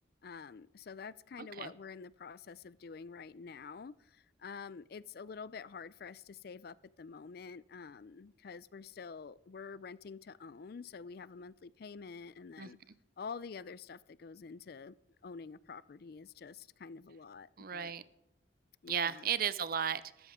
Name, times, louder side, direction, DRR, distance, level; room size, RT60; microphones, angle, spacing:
voice 1, 0.2-12.8 13.2-14.9 15.2-17.9 18.8-19.3, left 5 dB, 50° left, 0.4 m, -48 dB
voice 2, 1.4-1.7 12.6-12.7 17.6-18.0 18.9-20.3, right 8 dB, 50° right, 0.6 m, -35 dB
14.5 x 13.0 x 3.6 m
head